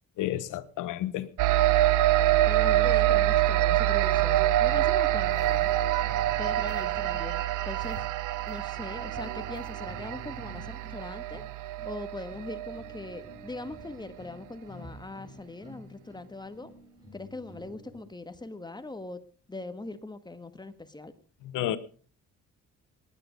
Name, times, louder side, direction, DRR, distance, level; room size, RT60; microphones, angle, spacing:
voice 1, 0.2-1.3 21.5-21.8, left 13 dB, 90° left, 1.2 m, -30 dB
sound 1, 1.4-13.2, right 14 dB, 90° right, 1.0 m, -26 dB
voice 2, 2.5-5.7 6.4-8.0 8.5-11.4 11.8-16.7 17.1-19.2 19.5-21.1, left 2 dB, 15° left, 1.7 m, -41 dB
sound 2, 2.7-18.1, left 1 dB, 15° right, 6.5 m, -50 dB
19.0 x 10.0 x 5.3 m
cardioid pair, 90°, 30 cm